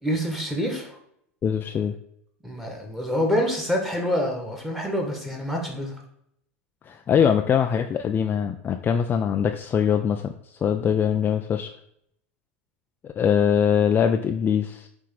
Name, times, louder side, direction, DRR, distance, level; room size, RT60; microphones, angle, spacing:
voice 1, 0.0-1.0 2.4-6.0, equal, ahead, 1 dB, 1.9 m, -26 dB
voice 2, 1.4-1.9 6.8-10.3 10.6-11.7 13.0-14.9, left 8 dB, 30° left, 6 dB, 0.5 m, -22 dB
8.4 x 3.6 x 4.0 m, 0.73 s
hypercardioid pair, 90°, 7 cm